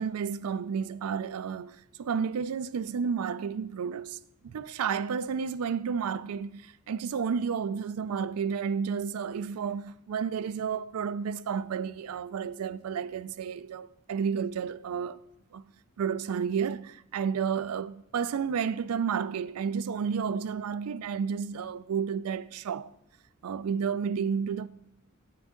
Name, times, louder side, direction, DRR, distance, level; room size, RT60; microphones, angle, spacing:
voice 1, 0.0-15.2 15.5-15.7 16.0-22.9 23.4-24.7, right 6 dB, 75° right, 0.4 m, -31 dB
8.0 x 7.5 x 3.7 m
head